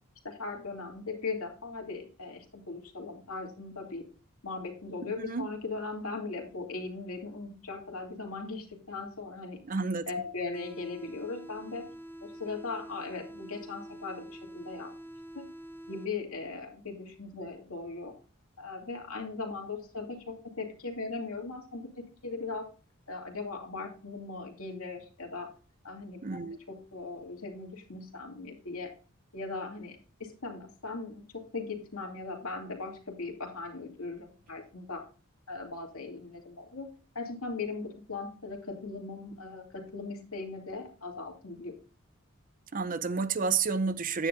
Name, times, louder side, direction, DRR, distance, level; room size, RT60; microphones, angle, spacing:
voice 1, 0.2-4.1 4.4-9.6 10.1-11.9 12.2-14.9 15.3-15.5 15.9-18.1 18.6-22.7 23.1-25.5 25.8-26.4 26.7-28.9 29.3-35.1 35.5-36.9 37.1-41.8, left 3 dB, 85° left, 2.6 m, -39 dB
voice 2, 9.7-10.1 26.2-26.6 42.7-44.3, right 5 dB, 40° right, 0.6 m, -30 dB
sound 1, 10.5-16.5, right 1 dB, 10° left, 0.8 m, -47 dB
9.8 x 9.5 x 2.6 m
head